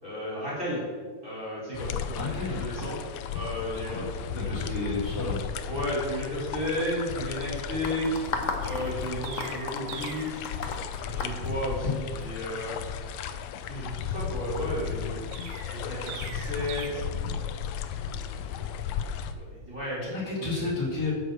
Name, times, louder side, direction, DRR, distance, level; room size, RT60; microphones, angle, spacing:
voice 1, 0.0-0.9 1.2-3.0 3.3-4.8 5.7-8.2 8.6-10.5 11.0-12.8 13.6-15.2 15.8-17.0 18.0-18.4 19.3-20.7, equal, 25° right, -6 dB, 4.5 m, -33 dB
sound 1, 1.7-19.3, left 7 dB, 80° left, 2.0 m, -35 dB
voice 2, 2.1-2.8 3.9-4.1 4.3-5.4 20.1-21.1, left 3 dB, 30° left, -6 dB, 4.7 m, -32 dB
sound 2, 7.8-12.2, left 4 dB, 55° left, 0.8 m, -34 dB
Chirp tweet, 8.6-10.4 15.3-16.9, right 6 dB, 80° right, 2.6 m, -42 dB
11.0 x 6.6 x 7.8 m, 1.5 s
omnidirectional pair, 3.3 m